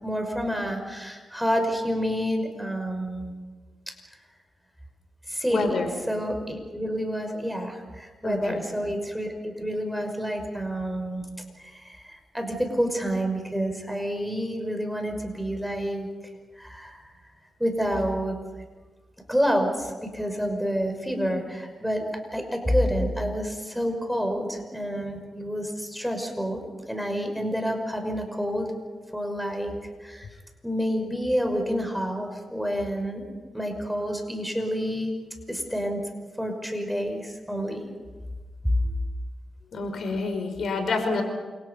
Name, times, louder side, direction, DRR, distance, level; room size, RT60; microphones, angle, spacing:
voice 1, 0.0-3.3 5.3-11.3 11.6-16.1 16.5-17.0 17.6-18.4 19.3-22.0 22.3-28.7 29.1-29.7 30.0-30.3 30.6-33.2 33.5-35.1 35.5-36.1 36.4-37.8 38.6-38.8, equal, ahead, 4 dB, 5.8 m, -28 dB
voice 2, 5.5-5.9 8.2-8.6 39.7-41.2, left 3 dB, 70° left, 5 dB, 5.3 m, -28 dB
29.0 x 27.0 x 5.6 m, 1.3 s
cardioid pair, 75°, 0 cm